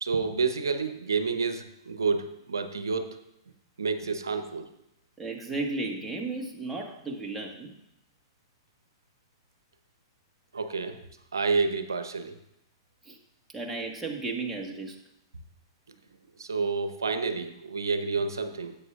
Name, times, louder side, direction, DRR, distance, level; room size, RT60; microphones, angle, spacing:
voice 1, 0.0-3.2 3.8-4.7 10.5-11.0 11.3-12.4 16.4-18.8, right 4 dB, 75° right, 9 dB, 0.9 m, -29 dB
voice 2, 5.2-7.7 13.0-13.2 13.5-15.0, right 3 dB, 10° right, 0 dB, 1.5 m, -34 dB
16.0 x 8.4 x 2.5 m, 0.81 s
figure-of-eight pair, 105°, 2 cm